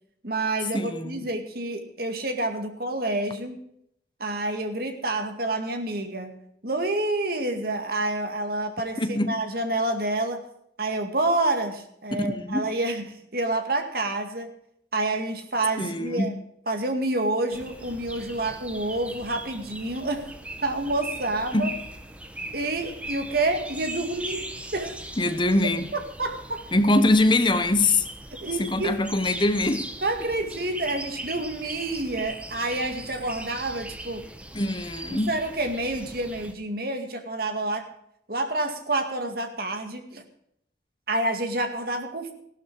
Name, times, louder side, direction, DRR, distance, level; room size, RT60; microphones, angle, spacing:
voice 1, 0.2-3.6 4.2-10.4 10.8-14.5 14.9-16.3 16.7-20.3 20.6-21.7 22.5-24.4 24.7-25.0 25.9-26.6 28.3-29.1 30.0-34.3 35.0-37.9 38.3-40.2 41.1-42.3, right 2 dB, 55° right, 2.1 m, -28 dB
voice 2, 0.7-1.2 9.0-9.3 12.2-12.6 15.8-16.3 21.5-21.7 25.2-25.9 26.7-28.0 28.7-29.8 34.5-35.3, left 2 dB, 25° left, 1.0 m, -23 dB
sound 1, 17.5-36.5, right 1 dB, 5° right, 1.1 m, -40 dB
15.5 x 12.0 x 4.7 m
head